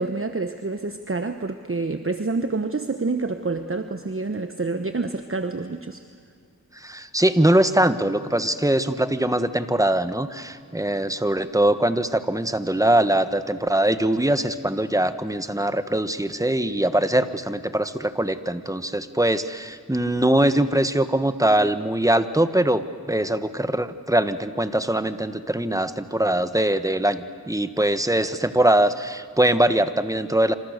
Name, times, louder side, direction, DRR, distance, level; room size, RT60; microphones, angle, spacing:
voice 1, 0.0-6.0, right 3 dB, 40° right, 8 dB, 1.1 m, -27 dB
voice 2, 6.8-22.8 23.1-30.5, right 1 dB, 10° right, 11 dB, 1.4 m, -22 dB
27.0 x 26.5 x 6.7 m, 2.1 s
wide cardioid pair, 40°, 34 cm